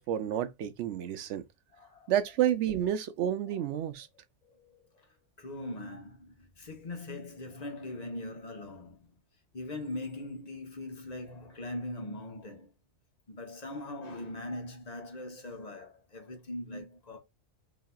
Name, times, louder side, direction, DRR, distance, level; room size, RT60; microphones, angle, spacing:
voice 1, 0.0-1.4 2.1-4.1, right 10 dB, 75° right, 0.9 m, -30 dB
voice 2, 1.7-2.1 3.5-3.6 4.4-5.1 5.4-9.1 9.5-12.7 13.3-17.2, left 1 dB, 35° left, 1.0 m, -41 dB
3.9 x 2.8 x 2.3 m
omnidirectional pair, 1.2 m